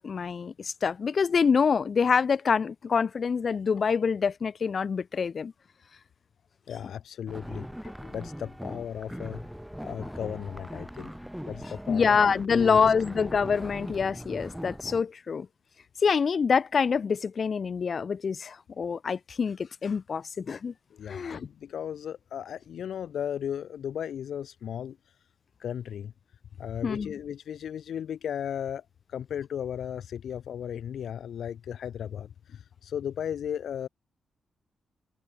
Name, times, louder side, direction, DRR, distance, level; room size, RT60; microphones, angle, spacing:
voice 1, 0.0-5.5 11.9-15.5 16.0-20.7 21.1-21.5 26.8-27.1, left 6 dB, 50° left, 1.8 m, -26 dB
voice 2, 6.7-7.7 8.1-9.4 9.8-11.1 11.5-12.2 12.5-12.8 20.9-25.0 25.6-26.1 26.6-33.9, left 9 dB, 75° left, 1.3 m, -35 dB
sound 1, 7.3-15.0, equal, ahead, 1.9 m, -40 dB
cardioid pair, 110°, 0 cm